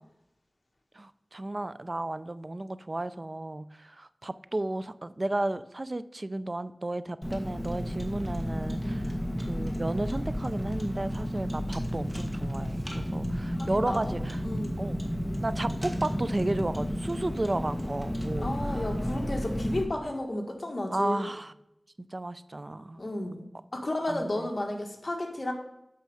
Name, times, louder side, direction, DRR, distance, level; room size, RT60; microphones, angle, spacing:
voice 1, 1.0-9.1 9.4-14.4 14.8-15.0 15.4-18.8 20.9-21.5 22.1-23.0 24.1-24.5, right 2 dB, 45° right, 15 dB, 0.4 m, -33 dB
Car, 7.2-19.8, equal, 5° left, 1.6 m, -32 dB
voice 2, 13.6-14.8 18.4-21.3 23.0-23.4 23.7-25.5, left 1 dB, 45° left, 2 dB, 1.7 m, -33 dB
8.4 x 6.2 x 4.9 m, 0.84 s
wide cardioid pair, 55°, 0 cm